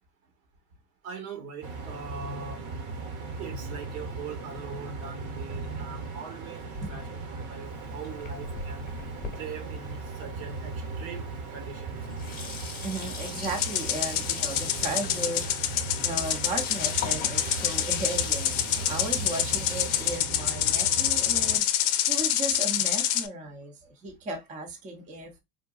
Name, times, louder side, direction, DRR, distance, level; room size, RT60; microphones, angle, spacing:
voice 1, 1.0-2.6 3.4-6.6 6.9-7.0 7.3-8.8 9.4-11.2 11.5-11.9, right 5 dB, 65° right, 1.4 m, -41 dB
sound 1, 1.6-21.6, right 3 dB, 40° right, 1.0 m, -38 dB
Sink (filling or washing), 7.6-10.8 11.5-11.6 11.9-20.2, left 5 dB, 20° left, 0.9 m, -39 dB
voice 2, 12.8-15.4 15.9-21.6 22.1-25.3, right 2 dB, 15° right, 0.6 m, -35 dB
sound 2, 13.6-23.3, left 12 dB, 55° left, 0.6 m, -27 dB
3.7 x 2.2 x 2.2 m
hypercardioid pair, 100°, 47 cm